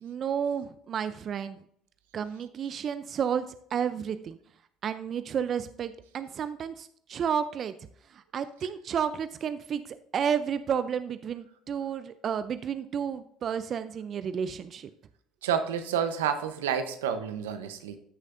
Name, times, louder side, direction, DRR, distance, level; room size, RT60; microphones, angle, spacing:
voice 1, 0.0-1.6 2.1-3.5 3.7-4.4 4.8-7.7 8.1-14.9, right 7 dB, 50° right, 0.5 m, -31 dB
voice 2, 15.4-18.0, right 8 dB, 85° right, 0.8 m, -29 dB
14.0 x 6.4 x 2.6 m
hypercardioid pair, 70°, 0 cm